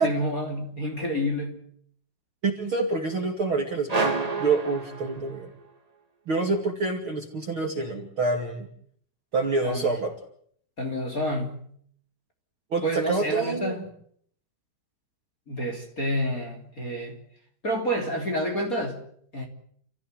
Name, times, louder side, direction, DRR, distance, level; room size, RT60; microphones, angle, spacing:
voice 1, 0.0-1.6 9.6-9.9 10.8-11.7 12.8-13.8 15.5-17.2 17.6-19.0 19.3-19.5, equal, 25° left, 3.4 m, -29 dB
voice 2, 2.4-5.5 6.3-8.7 9.3-10.1 12.7-13.7, right 3 dB, 35° right, 2.8 m, -27 dB
sound 1, 3.9-5.7, right 3 dB, 90° right, 0.3 m, -29 dB
29.5 x 15.0 x 9.0 m
omnidirectional pair, 4.4 m